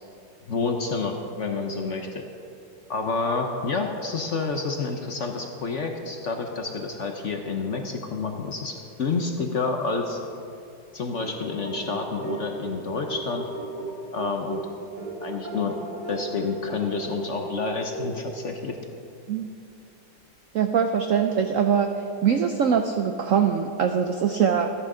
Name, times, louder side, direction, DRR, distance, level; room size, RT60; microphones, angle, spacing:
voice 1, 0.5-2.2 2.9-10.2 10.9-13.4 14.1-14.6 15.2-15.7 16.1-18.8, left 4 dB, 55° left, 4 dB, 0.9 m, -29 dB
sound 1, 10.9-18.5, right 2 dB, 25° right, 2.2 m, -36 dB
voice 2, 20.5-21.9 22.2-24.7, right 7 dB, 90° right, 6 dB, 0.7 m, -22 dB
14.0 x 10.5 x 4.9 m, 2.5 s
omnidirectional pair, 2.1 m